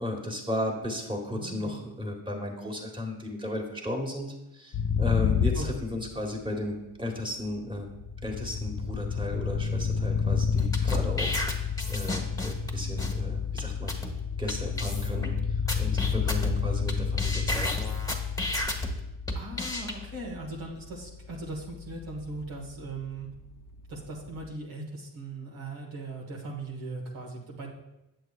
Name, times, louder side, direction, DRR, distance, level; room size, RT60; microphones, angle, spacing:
voice 1, 0.0-7.9 8.2-13.9 14.4-15.3 15.8-17.8, left 1 dB, 10° right, 1 dB, 1.6 m, -35 dB
voice 2, 1.3-1.9 5.5-5.7 19.3-23.3 23.9-27.7, right 2 dB, 75° right, -2 dB, 1.6 m, -39 dB
sound 1, 4.7-6.5 7.5-24.4, left 6 dB, 40° left, 0.6 m, -31 dB
sound 2, 10.6-12.7 13.0-13.1 13.6-13.7 13.9-14.1 14.5-14.6 14.8-15.3 15.7-16.9 17.2-18.9 19.3-19.9, left 1 dB, 5° left, 1.4 m, -32 dB
7.9 x 7.1 x 2.4 m, 0.91 s
supercardioid pair, 45°, 48 cm